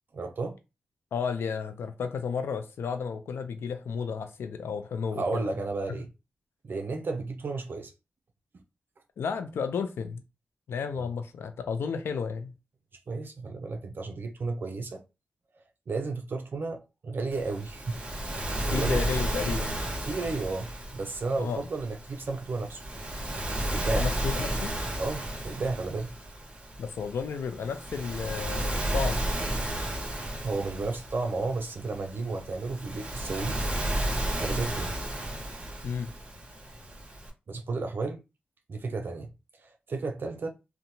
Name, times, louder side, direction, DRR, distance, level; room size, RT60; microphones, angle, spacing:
voice 1, 0.1-0.6 5.2-6.1 6.6-7.9 10.9-11.1 13.1-15.0 15.9-18.0 18.3-19.0 20.0-22.8 23.7-24.1 25.0-26.1 30.4-33.6 34.4-34.9 37.5-38.2 38.7-39.3 39.6-40.5, right 3 dB, 60° right, 0.4 m, -33 dB
voice 2, 1.1-5.5 9.2-10.2 10.7-12.5 18.7-19.8 21.4-21.6 23.9-24.7 26.8-29.3 35.8-36.1, left 6 dB, 85° left, 0.4 m, -32 dB
Waves surf, 17.3-37.3, right 1 dB, 30° right, 1.1 m, -33 dB
2.8 x 2.1 x 2.7 m
cardioid pair, 50°, 4 cm